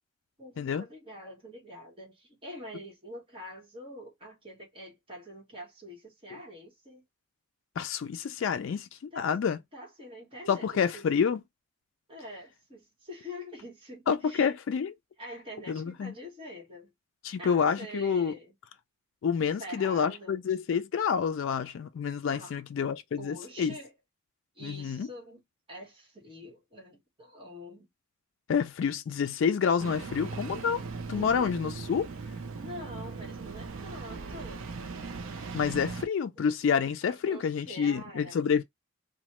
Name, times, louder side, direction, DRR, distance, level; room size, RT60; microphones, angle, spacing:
voice 1, 0.4-7.0 9.1-9.3 9.7-10.7 10.9-11.1 12.1-14.5 15.2-16.9 17.4-18.5 19.4-20.4 22.3-22.5 23.2-23.9 24.5-27.9 31.1-31.6 32.5-34.6 36.4-36.5 37.0-38.3, equal, 25° right, 1.2 m, -45 dB
voice 2, 7.8-8.9 9.2-9.6 10.5-11.4 14.1-14.9 15.7-16.1 17.2-18.3 19.2-23.8 24.6-25.1 28.5-30.8 31.1-32.1 35.5-38.6, left 6 dB, 60° left, 0.3 m, -28 dB
Engine starting, 29.8-36.1, right 4 dB, 75° right, 0.4 m, -39 dB
3.0 x 2.1 x 2.9 m
head